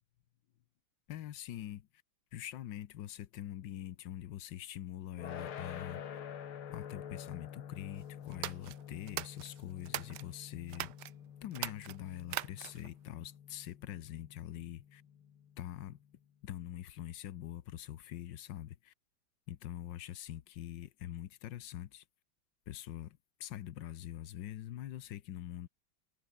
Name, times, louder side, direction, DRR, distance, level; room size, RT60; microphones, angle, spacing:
voice 1, 1.1-1.9 2.3-6.0 6.7-10.9 11.4-15.0 15.6-16.0 16.4-18.9 19.5-22.0 22.7-25.7, left 12 dB, 65° left, 1.4 m, -44 dB
sound 1, 5.2-16.2, left 9 dB, 85° left, 2.5 m, -48 dB
sound 2, 8.3-10.3 10.7-11.1 11.5-12.9, right 14 dB, 65° right, 1.2 m, -41 dB
omnidirectional pair, 2.3 m